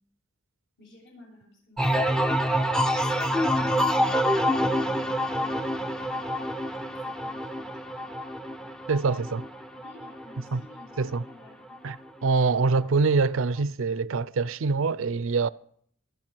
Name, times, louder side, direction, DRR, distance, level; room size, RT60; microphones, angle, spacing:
voice 1, 0.8-2.6 2.9-4.2 4.7-6.6 6.9-7.7 8.0-8.1 8.4-8.7 9.7-11.8, left 1 dB, 65° left, 7.7 m, -52 dB
sound 1, 1.8-11.3 11.7-12.2, equal, 5° left, 0.6 m, -27 dB
voice 2, 8.9-9.4 10.5-10.6 11.0-11.2 11.8-15.5, right 4 dB, 70° right, 0.5 m, -25 dB
23.5 x 8.1 x 4.6 m
head